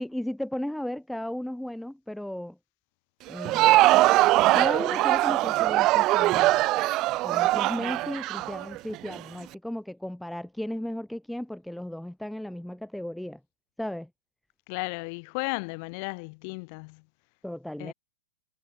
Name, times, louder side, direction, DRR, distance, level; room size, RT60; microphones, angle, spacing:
voice 1, 0.0-2.6 3.3-3.8 4.5-6.6 7.2-13.4 13.8-14.1 17.4-17.9, left 1 dB, ahead, 1.9 m, -35 dB
Crowd, 3.3-9.2, right 18 dB, 40° right, 0.5 m, -22 dB
voice 2, 14.7-17.0 17.8-17.9, left 36 dB, 50° left, 4.3 m, -34 dB
hypercardioid pair, 130°, 0 cm